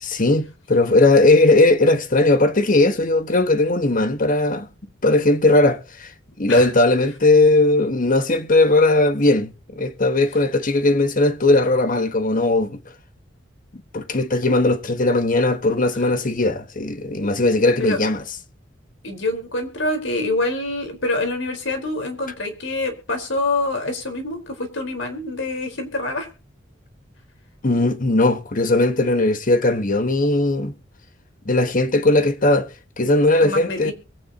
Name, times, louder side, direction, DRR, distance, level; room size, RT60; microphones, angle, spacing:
voice 1, 0.0-4.7 5.0-6.1 6.4-12.8 13.9-18.2 27.6-30.7 31.4-32.7 33.0-33.9, left 2 dB, 45° left, 1.4 m, -18 dB
voice 2, 19.0-26.3 33.4-33.9, left 2 dB, 75° left, 4.4 m, -26 dB
22.5 x 9.2 x 2.9 m
head